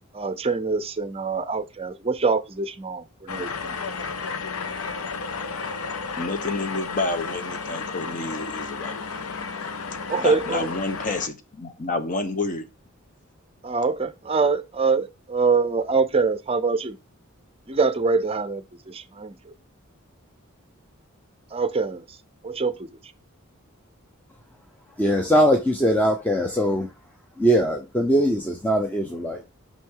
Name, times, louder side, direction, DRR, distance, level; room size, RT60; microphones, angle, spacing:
voice 1, 0.1-3.8 10.1-10.7 13.6-17.0 17.7-19.4 21.5-22.0 22.4-22.9, right 4 dB, 25° right, 0.6 m, -24 dB
sound 1, 3.3-11.3, left 5 dB, 80° left, 0.7 m, -32 dB
voice 2, 6.2-9.0 10.2-12.6, left 3 dB, 40° left, 1.0 m, -29 dB
voice 3, 25.0-26.9 27.4-29.4, equal, 10° left, 0.7 m, -21 dB
5.9 x 5.4 x 3.8 m
head